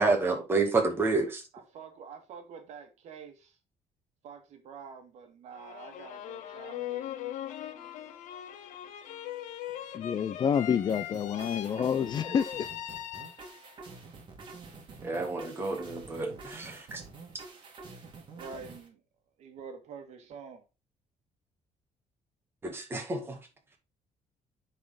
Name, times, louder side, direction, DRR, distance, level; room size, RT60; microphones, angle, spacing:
voice 1, 0.0-1.4 15.0-17.0 22.6-23.4, right 3 dB, 20° right, 2.0 m, -29 dB
voice 2, 1.7-3.5 4.2-7.1 7.7-8.5 18.4-19.0 19.4-20.6, right 6 dB, 65° right, 1.7 m, -47 dB
sound 1, 5.5-13.7, left 12 dB, 85° left, 0.9 m, -40 dB
voice 3, 9.9-12.7, left 7 dB, 35° left, 0.5 m, -28 dB
sound 2, 10.9-18.9, right 4 dB, 40° right, 2.4 m, -48 dB
9.4 x 4.3 x 3.8 m
cardioid pair, 155°, 12 cm